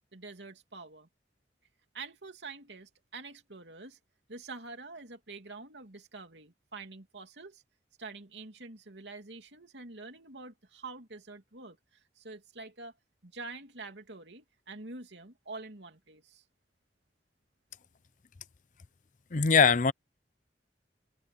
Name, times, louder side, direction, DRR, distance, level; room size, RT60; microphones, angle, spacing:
voice 1, 0.1-1.1 1.9-4.0 4.3-7.6 8.0-11.8 12.2-12.9 13.2-16.4, right 3 dB, 85° right, 2.8 m, -46 dB
voice 2, 19.3-19.9, left 5 dB, 45° left, 0.6 m, -22 dB
head